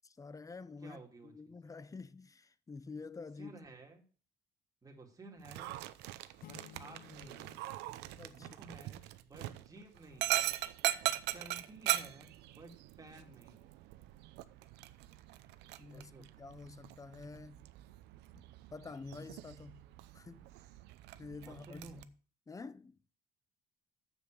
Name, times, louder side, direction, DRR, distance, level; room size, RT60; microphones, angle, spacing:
voice 1, 0.0-3.6 8.1-8.5 15.8-17.6 18.3-18.4 18.7-19.8 20.1-20.4 21.2-22.1 22.5-23.0, left 4 dB, 20° left, 0.6 m, -48 dB
voice 2, 0.8-1.5 3.4-4.0 4.8-5.8 6.3-7.5 8.3-10.6 11.3-13.7 15.9-16.3 21.4-22.0, right 2 dB, 20° right, 2.8 m, -54 dB
Dog, 5.4-22.0, right 15 dB, 85° right, 0.7 m, -41 dB
sound 1, 6.4-9.2, left 12 dB, 60° left, 1.0 m, -58 dB
7.3 x 7.1 x 7.6 m
cardioid pair, 110°, 17 cm